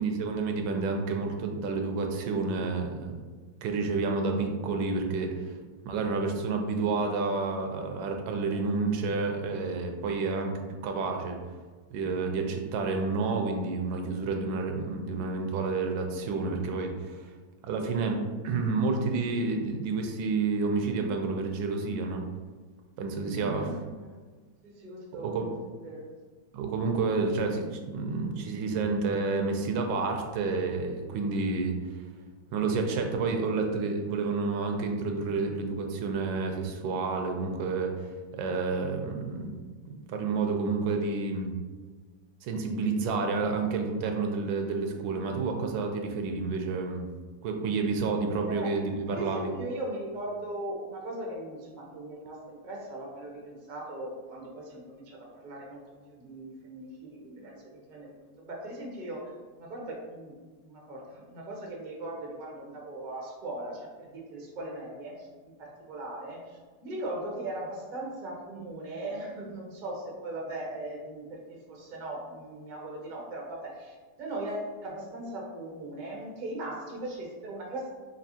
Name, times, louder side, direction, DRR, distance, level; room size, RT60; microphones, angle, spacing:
voice 1, 0.0-3.1 3.6-5.5 5.8-10.5 10.8-11.4 11.9-17.3 17.6-22.2 23.0-23.7 25.2-25.5 26.5-32.0 32.5-39.5 39.9-41.5 42.4-47.1 47.4-49.5, right 4 dB, 80° right, 3 dB, 1.3 m, -30 dB
voice 2, 23.3-24.1 24.6-25.4 25.8-26.0 48.5-48.7 49.1-55.8 56.1-60.3 60.6-77.9, right 1 dB, 50° right, -2 dB, 0.5 m, -39 dB
5.2 x 2.7 x 2.7 m, 1.4 s
omnidirectional pair, 2.1 m